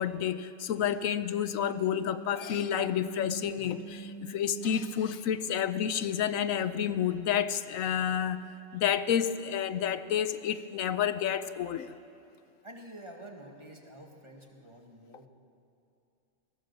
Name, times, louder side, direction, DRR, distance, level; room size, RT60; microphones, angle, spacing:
voice 1, 0.0-8.4 8.7-11.9, left 9 dB, 80° left, 13 dB, 1.1 m, -30 dB
sound 1, 1.5-6.7, right 1 dB, 30° left, 2.2 m, -45 dB
voice 2, 12.6-15.3, right 1 dB, 20° right, 1 dB, 2.1 m, -48 dB
21.0 x 17.5 x 7.2 m, 2.6 s
omnidirectional pair, 1.4 m